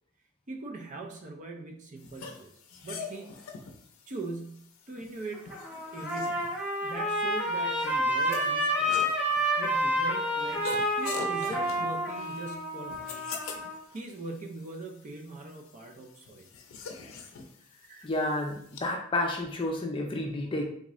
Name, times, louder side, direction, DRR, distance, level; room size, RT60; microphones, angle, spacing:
voice 1, 0.5-2.5 2.8-3.3 4.1-5.5 5.9-9.2 9.6-13.3 13.9-16.5 17.9-18.1, right 2 dB, 35° right, 2 dB, 0.5 m, -41 dB
sound 1, 2.0-18.8, left 5 dB, 80° left, 0.5 m, -45 dB
Trumpet, 5.3-13.8, equal, 5° right, 0.8 m, -29 dB
voice 2, 18.0-20.6, left 2 dB, 25° left, 2 dB, 0.4 m, -30 dB
3.5 x 2.5 x 3.0 m, 0.66 s
head